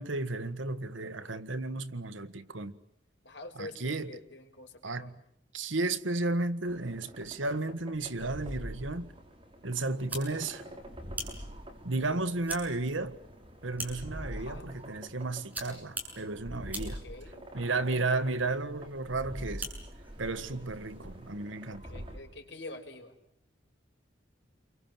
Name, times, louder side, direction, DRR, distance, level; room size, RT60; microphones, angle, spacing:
voice 1, 0.0-2.8 3.6-4.1 4.8-5.2 5.5-9.1 9.6-10.6 11.8-13.2 13.6-17.0 17.5-19.7 20.2-21.8, right 2 dB, 90° right, 1.7 m, -33 dB
voice 2, 3.2-5.1 14.4-14.7 16.8-17.5 21.7-23.1, left 2 dB, 65° left, 5.4 m, -46 dB
sound 1, 6.6-22.2, equal, 25° right, 4.7 m, -46 dB
sound 2, 9.9-21.3, right 1 dB, 10° right, 7.0 m, -45 dB
30.0 x 24.0 x 7.5 m
head